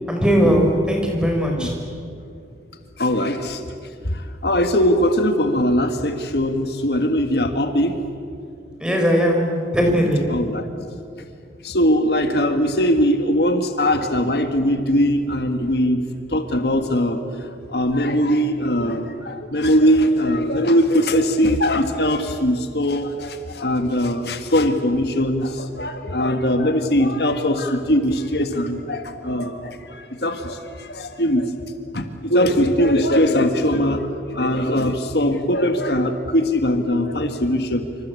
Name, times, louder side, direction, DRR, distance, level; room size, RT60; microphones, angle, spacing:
voice 1, 0.1-1.7 8.8-10.2, equal, 5° right, 1 dB, 5.2 m, -19 dB
voice 2, 3.0-3.6 4.1-8.0 10.3-10.7 11.6-16.0 16.3-31.5 31.9-37.8, equal, 65° left, 7 dB, 1.8 m, -20 dB
27.0 x 26.5 x 8.4 m, 2.5 s
head